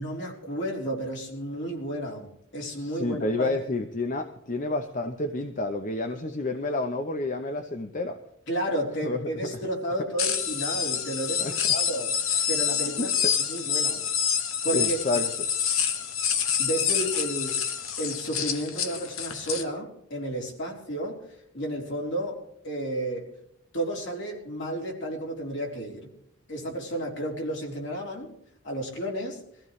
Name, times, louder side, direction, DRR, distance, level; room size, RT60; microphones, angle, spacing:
voice 1, 0.0-3.5 8.5-12.2 12.5-13.1 13.5-14.1 14.6-15.0 16.6-17.7 18.0-21.2 21.5-23.3 23.7-26.1 26.5-28.3 28.6-29.4, right 1 dB, 60° left, -1 dB, 3.4 m, -32 dB
voice 2, 2.8-8.2 9.0-9.2 11.4-11.5 12.9-13.3 14.7-15.5, left 2 dB, 40° left, 7 dB, 0.8 m, -30 dB
sound 1, 10.2-19.6, left 8 dB, 80° left, 1.3 m, -27 dB
22.5 x 15.0 x 3.2 m, 0.74 s
head